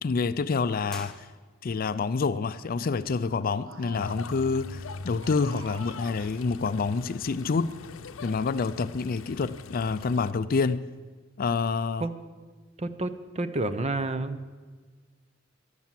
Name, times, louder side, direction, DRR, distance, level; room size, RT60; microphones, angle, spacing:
voice 1, 0.0-1.3 1.6-7.7 8.2-10.8 11.4-12.0, left 4 dB, 45° left, 0.4 m, -27 dB
sound 1, 0.9-1.9, left 1 dB, 5° left, 0.9 m, -46 dB
sound 2, 3.2-4.5 5.1-6.7, right 3 dB, 80° right, 1.0 m, -48 dB
sound 3, 3.9-10.3, left 4 dB, 85° left, 0.7 m, -42 dB
voice 2, 12.8-14.5, right 2 dB, 30° right, 0.7 m, -30 dB
13.0 x 11.5 x 7.5 m
head